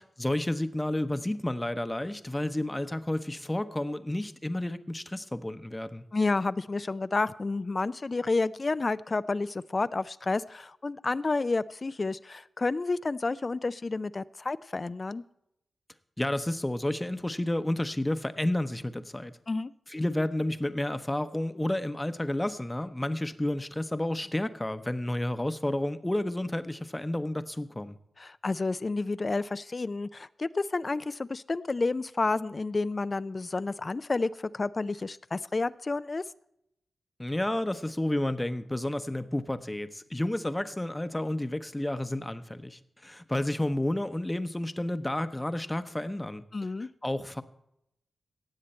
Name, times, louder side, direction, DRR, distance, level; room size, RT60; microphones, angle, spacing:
voice 1, 0.0-6.1 16.2-19.4 19.9-28.0 37.2-46.4 47.0-47.4, left 1 dB, 15° left, 11 dB, 0.8 m, -31 dB
voice 2, 6.1-15.2 19.5-19.7 28.2-36.2 46.5-46.9, left 3 dB, 45° left, 16 dB, 0.3 m, -30 dB
17.0 x 7.5 x 4.3 m, 0.81 s
cardioid pair, 40°, 0 cm